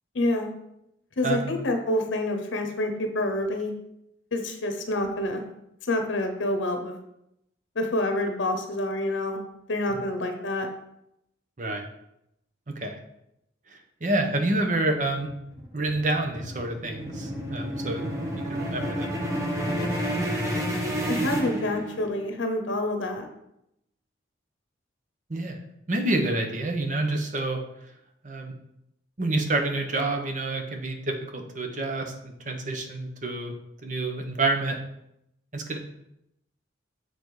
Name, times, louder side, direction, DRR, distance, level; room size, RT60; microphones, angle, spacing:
voice 1, 0.1-0.5 1.2-3.7 4.3-5.4 5.9-6.9 7.8-9.4 9.7-10.7 21.1-23.3, left 1 dB, 85° left, 5 dB, 0.8 m, -27 dB
voice 2, 14.0-15.3 15.7-18.0 18.5-19.1 25.3-25.6 25.9-27.6 28.2-28.5 29.2-33.5 33.8-34.8 35.5-35.8, right 2 dB, 40° right, 4 dB, 0.9 m, -28 dB
sound 1, 15.2-22.2, equal, 15° right, 1.0 m, -30 dB
6.9 x 4.1 x 4.7 m, 0.81 s
head